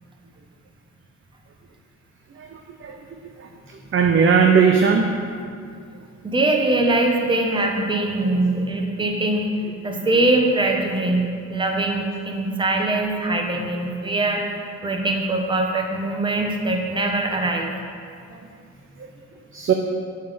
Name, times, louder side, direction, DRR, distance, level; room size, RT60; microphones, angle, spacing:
voice 1, 2.4-3.0 3.4-3.5 3.9-5.1 19.5-19.7, right 6 dB, 45° right, 3 dB, 0.7 m, -18 dB
voice 2, 6.2-9.5 9.8-17.7, right 2 dB, 15° right, 1 dB, 1.1 m, -22 dB
8.0 x 8.0 x 5.2 m, 2.3 s
cardioid pair, 90°, 30 cm